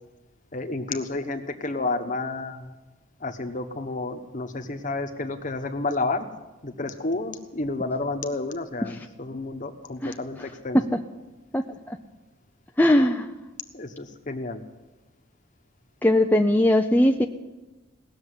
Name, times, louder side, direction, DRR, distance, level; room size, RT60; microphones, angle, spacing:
voice 1, 0.5-2.7 3.2-6.2 6.6-10.8 13.7-14.6, left 2 dB, 40° left, 7 dB, 1.2 m, -30 dB
voice 2, 11.5-12.0 12.8-13.3 16.0-17.3, left 1 dB, 10° left, 3 dB, 0.5 m, -20 dB
18.5 x 7.1 x 9.7 m, 1.2 s
head